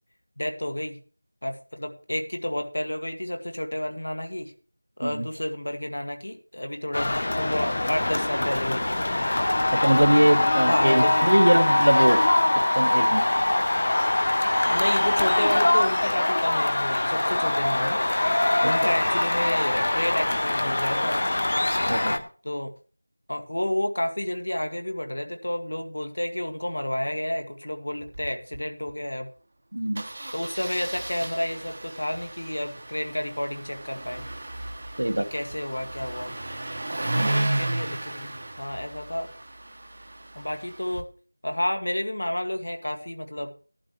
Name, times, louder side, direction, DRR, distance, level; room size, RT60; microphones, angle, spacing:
voice 1, 0.4-1.0 1.4-4.5 5.0-9.0 10.7-11.2 14.7-18.0 18.6-21.2 22.4-22.7 23.3-29.3 30.3-34.2 35.2-36.3 37.2-39.3 40.4-41.1 41.4-43.5, left 1 dB, 70° left, 5 dB, 2.0 m, -30 dB
sound 1, 6.9-22.2, left 1 dB, 35° left, 0.9 m, -23 dB
voice 2, 9.7-12.2 12.7-13.3 18.6-18.7 21.9-22.2 29.7-30.1 35.0-35.3 37.1-37.5, right 1 dB, 70° right, 10 dB, 1.2 m, -22 dB
Engine starting, 28.0-28.3 28.5-28.6 28.9-29.1 30.0-41.0, right 1 dB, 35° right, 1.0 m, -33 dB
15.0 x 11.0 x 3.2 m, 0.38 s
figure-of-eight pair, 180°, 0 cm